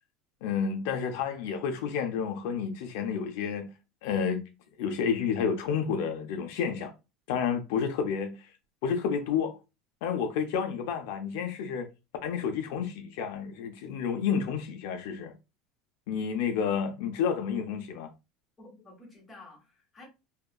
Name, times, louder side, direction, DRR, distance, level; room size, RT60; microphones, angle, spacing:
voice 1, 0.4-3.7 4.0-4.4 4.8-6.9 7.3-8.5 8.8-9.5 10.0-11.9 12.2-15.3 16.1-18.1, left 7 dB, 75° left, 0.4 m, -30 dB
voice 2, 18.6-20.1, left 2 dB, 15° left, 1.1 m, -51 dB
2.7 x 2.3 x 2.2 m
cardioid pair, 155°, 0 cm